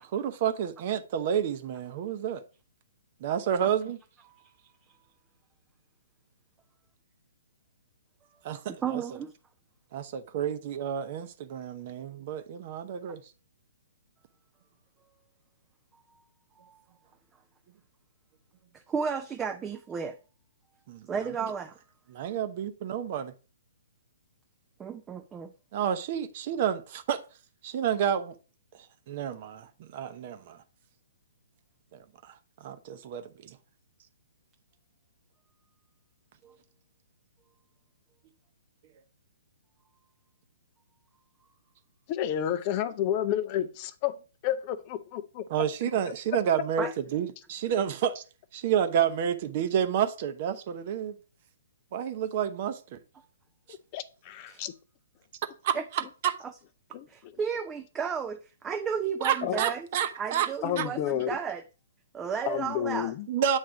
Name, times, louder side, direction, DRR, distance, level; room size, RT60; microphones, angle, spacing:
voice 1, 0.1-2.4 3.2-4.0 8.4-9.0 9.9-13.2 20.9-21.1 22.1-23.3 25.7-27.2 27.6-28.3 29.1-30.6 32.2-32.3 32.6-33.6 45.5-48.2 48.5-51.1 51.9-53.0 55.6-55.7 56.2-56.4 59.2-60.5 60.8-60.9 63.3-63.6, right 9 dB, 45° right, 0.8 m, -29 dB
voice 2, 8.8-9.3 16.6-16.8 18.7-20.2 21.1-21.8 24.8-25.5 36.4-36.6 46.8-46.9 53.2-53.3 54.5-54.6 55.7-55.8 56.4-56.5 57.1-59.9 60.2-61.6 62.1-63.1, right 6 dB, 15° right, 0.4 m, -33 dB
voice 3, 42.1-44.2 44.4-45.4 53.9-54.7 56.9-57.3 59.4-59.6 60.6-61.3 62.5-63.3, left 11 dB, 35° left, 0.5 m, -30 dB
8.1 x 3.3 x 5.0 m
figure-of-eight pair, 130°, 0 cm